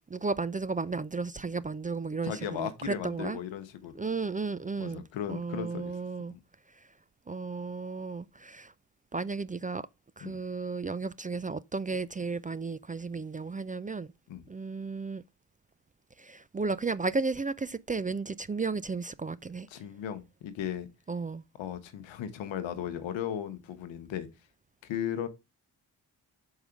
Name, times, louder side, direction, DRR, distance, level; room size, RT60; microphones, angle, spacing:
voice 1, 0.1-3.4 4.0-5.0 5.3-6.3 7.3-8.7 9.1-9.9 10.2-14.1 14.5-15.2 16.2-19.7 21.1-21.4, right 4 dB, 20° right, 0.3 m, -34 dB
voice 2, 2.2-3.9 4.8-5.9 6.3-6.4 10.2-10.4 14.3-14.4 19.7-20.9 21.6-24.3 24.8-25.3, left 9 dB, 90° left, 1.0 m, -36 dB
5.5 x 4.8 x 5.0 m
supercardioid pair, 45°, 44 cm